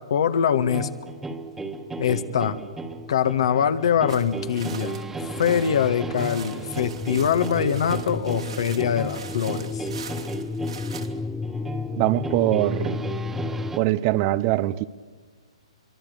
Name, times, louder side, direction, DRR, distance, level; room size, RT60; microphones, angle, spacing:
voice 1, 0.1-0.9 2.0-2.6 3.1-5.0 5.4-9.9, left 8 dB, 60° left, 1.6 m, -23 dB
sound 1, 0.7-13.8, right 3 dB, 10° right, 1.6 m, -35 dB
sound 2, 1.9-13.8, left 4 dB, 10° left, 0.7 m, -34 dB
sound 3, 4.1-11.1, right 6 dB, 75° right, 2.8 m, -43 dB
voice 2, 12.0-13.0 13.8-14.8, right 16 dB, 35° right, 0.7 m, -22 dB
25.0 x 23.5 x 6.7 m
figure-of-eight pair, 125°, 3 cm